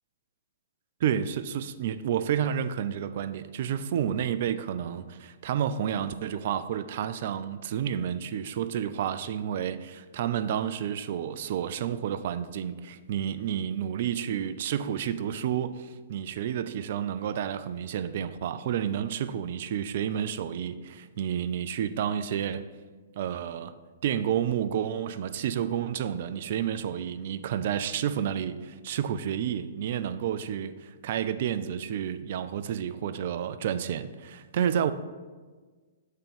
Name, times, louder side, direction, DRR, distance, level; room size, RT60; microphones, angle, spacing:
voice 1, 1.0-22.7 23.2-23.7 24.0-34.9, right 9 dB, 50° right, 0.3 m, -30 dB
6.6 x 3.6 x 5.3 m
figure-of-eight pair, 120°, 0 cm